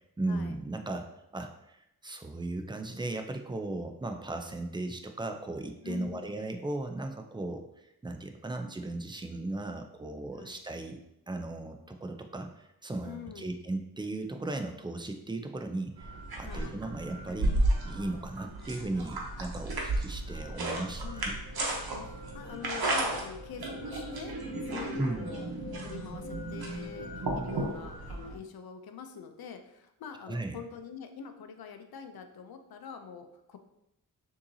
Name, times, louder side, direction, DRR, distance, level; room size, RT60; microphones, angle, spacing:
voice 1, 0.2-11.0 11.3-21.3 25.0-25.3 30.3-30.6, right 2 dB, 15° right, 5 dB, 0.4 m, -37 dB
voice 2, 5.8-6.4 10.4-10.6 13.0-13.5 16.4-16.8 21.0-21.6 22.0-24.4 24.7-25.4 25.8-33.6, left 7 dB, 80° left, 7 dB, 0.6 m, -45 dB
sound 1, 16.0-28.4, right 1 dB, 85° right, 0.9 m, -34 dB
6.5 x 2.8 x 2.7 m, 0.82 s
wide cardioid pair, 95°, 36 cm